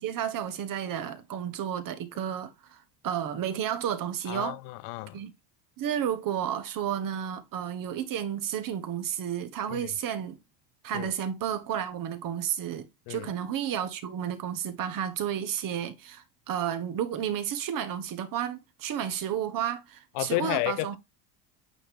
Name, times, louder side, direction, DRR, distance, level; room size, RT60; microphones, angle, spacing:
voice 1, 0.0-4.6 5.1-5.3 5.8-10.4 10.8-21.0, right 9 dB, 40° right, 1.4 m, -32 dB
voice 2, 4.3-5.2 9.7-9.9 10.9-11.1 13.1-13.3 20.1-21.0, left 21 dB, 70° left, 0.5 m, -32 dB
8.9 x 3.1 x 3.6 m
supercardioid pair, 125°, 48 cm